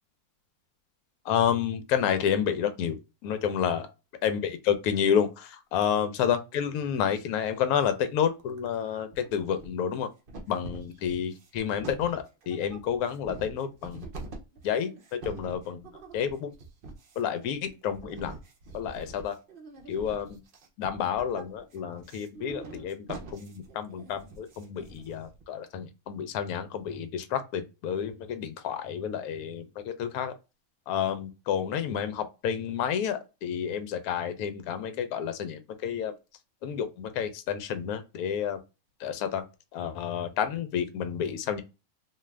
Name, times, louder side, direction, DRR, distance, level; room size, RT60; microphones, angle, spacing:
voice 1, 1.2-3.9 4.2-10.1 10.5-14.1 14.6-16.5 17.2-18.3 18.7-19.4 19.9-20.4 20.8-30.3 30.9-36.1 36.6-38.6 39.0-39.4 39.7-41.6, left 8 dB, 75° left, 1.0 m, -30 dB
sound 1, 8.3-8.8 9.1-9.9 10.3-25.4, right 3 dB, 60° right, 0.5 m, -45 dB
2.6 x 2.4 x 3.1 m
omnidirectional pair, 1.6 m